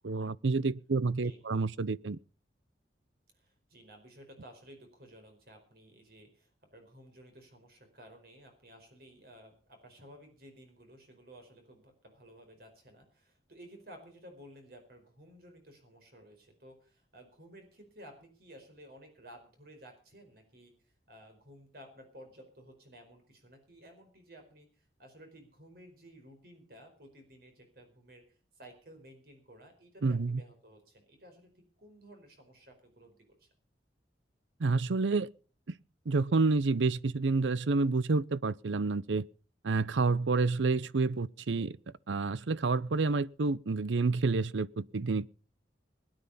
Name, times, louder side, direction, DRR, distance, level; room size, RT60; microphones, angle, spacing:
voice 1, 0.0-2.2 30.0-30.4 34.6-35.3 35.7-35.8 36.1-39.3 39.6-41.8 42.1-45.3, right 3 dB, 85° right, 0.6 m, -29 dB
voice 2, 3.3-28.2 28.6-33.5, equal, 55° right, 4.7 m, -55 dB
20.5 x 9.9 x 5.6 m
head